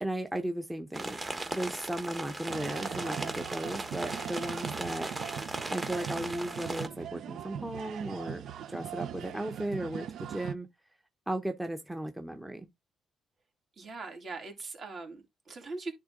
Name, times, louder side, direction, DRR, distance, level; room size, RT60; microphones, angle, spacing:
voice 1, 0.0-1.2 1.5-5.1 5.7-8.4 8.7-10.7 11.3-12.7, right 1 dB, 10° right, 0.8 m, -36 dB
sound 1, 0.9-6.9, right 2 dB, 25° right, 1.3 m, -37 dB
sound 2, 2.5-10.5, right 9 dB, 70° right, 0.5 m, -40 dB
voice 2, 13.8-15.9, right 3 dB, 50° right, 2.9 m, -41 dB
10.0 x 3.7 x 3.8 m
cardioid pair, 90°, 0 cm